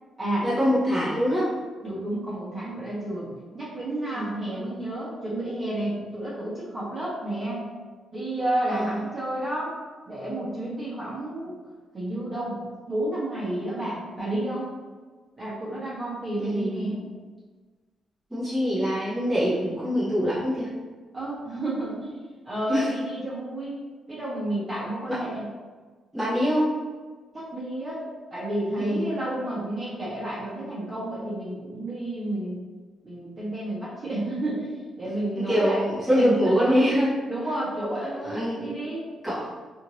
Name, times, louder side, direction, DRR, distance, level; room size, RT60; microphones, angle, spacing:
voice 1, 0.4-1.5 4.1-4.3 8.7-9.0 16.4-17.0 18.3-20.7 22.7-22.9 25.1-25.2 26.1-26.7 28.8-29.1 35.4-37.1 38.2-38.6 39.2-39.5, equal, 5° right, -11 dB, 1.0 m, -24 dB
voice 2, 1.8-7.6 8.1-9.7 10.0-11.6 11.9-12.6 12.9-14.7 15.4-17.0 21.1-22.2 22.4-25.4 27.3-28.0 28.3-32.6 33.0-35.8 36.2-36.9 37.3-39.0, right 1 dB, 30° right, -8 dB, 1.2 m, -31 dB
2.7 x 2.7 x 2.9 m, 1.4 s
cardioid pair, 130°, 0 cm